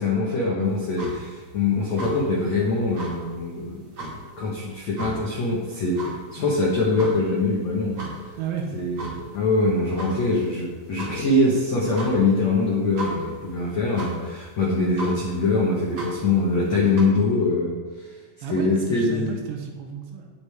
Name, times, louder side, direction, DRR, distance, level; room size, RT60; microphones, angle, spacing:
voice 1, 0.0-3.9 4.4-6.0 6.3-8.0 8.7-18.1 18.5-19.4, left 2 dB, 75° left, -4 dB, 1.6 m, -23 dB
sound 1, 0.6-17.0, right 2 dB, 40° right, 2.4 m, -38 dB
voice 2, 8.4-8.7 18.4-20.3, right 7 dB, 75° right, 2 dB, 3.2 m, -32 dB
17.5 x 6.6 x 3.6 m, 1.4 s
omnidirectional pair, 5.6 m